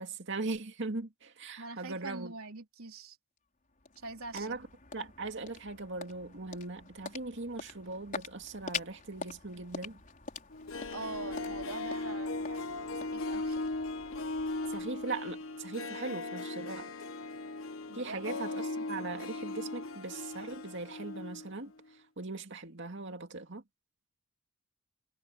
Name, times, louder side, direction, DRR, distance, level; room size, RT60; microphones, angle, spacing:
voice 1, 0.0-2.3 4.3-4.7 4.9-10.0 14.7-16.9 17.9-23.6, right 3 dB, 60° right, 2.3 m, -40 dB
voice 2, 1.6-3.2 4.0-4.6 10.9-13.6 17.9-18.2, right 3 dB, 85° right, 3.7 m, -44 dB
sound 1, 3.4-15.8, left 5 dB, 40° left, 5.0 m, -46 dB
Harp, 10.5-21.5 21.8-21.9, left 2 dB, 70° left, 1.4 m, -38 dB
head